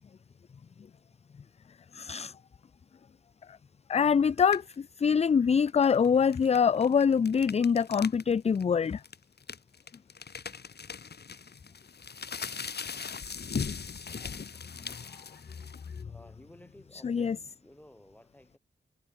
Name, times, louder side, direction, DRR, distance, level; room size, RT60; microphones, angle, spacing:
voice 1, 1.9-2.3 3.9-9.0 17.0-17.4, left 6 dB, 35° left, 0.4 m, -24 dB
sound 1, 4.4-4.7 5.7-8.2 8.5-8.6 9.0-16.0, left 5 dB, 55° left, 1.2 m, -39 dB
voice 2, 16.1-18.6, left 1 dB, 10° left, 4.9 m, -55 dB
cardioid pair, 55°, 20 cm